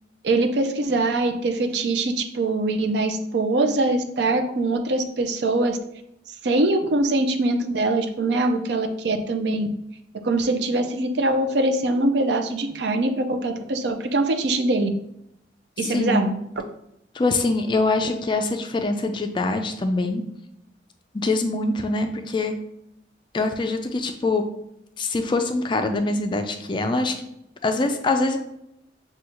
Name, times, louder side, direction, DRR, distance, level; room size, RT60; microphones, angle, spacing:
voice 1, 0.2-5.8 6.4-9.7 10.2-14.9 15.8-16.4, right 2 dB, 65° right, 6 dB, 0.5 m, -23 dB
voice 2, 15.9-16.3 17.1-20.2 21.1-22.5 23.3-24.4 25.0-27.1 27.6-28.4, left 2 dB, 25° left, 6 dB, 0.3 m, -24 dB
6.2 x 2.3 x 2.9 m, 0.80 s
head